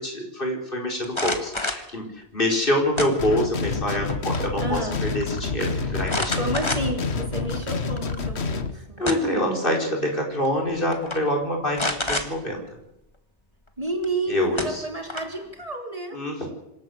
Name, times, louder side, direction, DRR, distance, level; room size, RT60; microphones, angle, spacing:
voice 1, 0.0-2.1 2.3-6.3 9.0-12.6 14.3-14.8 16.1-16.5, left 1 dB, 55° left, 1 dB, 4.6 m, -26 dB
sound 1, 1.0-1.9 3.0-3.6 4.0-4.5 4.8-4.9 6.1-7.1 7.6-7.7 8.7-9.5 10.5-10.6 10.9-11.2 11.7-12.3 14.0-14.1 14.6-15.4, left 2 dB, 25° left, 1.9 m, -28 dB
sound 2, 3.2-8.7, left 4 dB, 75° left, 1.6 m, -28 dB
voice 2, 4.6-5.0 6.3-9.1 13.8-16.2, right 2 dB, 35° right, 1 dB, 3.8 m, -31 dB
26.0 x 12.5 x 7.8 m, 0.87 s
omnidirectional pair, 1.1 m